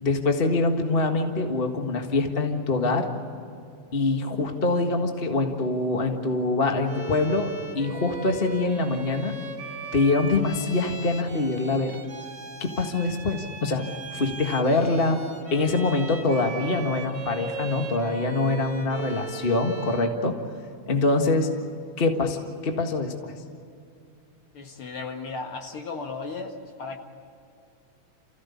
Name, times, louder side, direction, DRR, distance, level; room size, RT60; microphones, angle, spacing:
voice 1, 0.0-3.1 3.9-9.3 9.9-12.0 12.6-13.8 14.1-15.2 15.5-20.4 20.9-21.5 22.0-23.4, left 3 dB, 30° left, 4 dB, 1.1 m, -24 dB
Bowed string instrument, 6.8-20.2, right 5 dB, 40° right, 3.1 m, -38 dB
voice 2, 24.5-27.0, left 4 dB, 50° left, 3 dB, 2.3 m, -35 dB
29.0 x 16.0 x 8.5 m, 2.6 s
omnidirectional pair, 3.6 m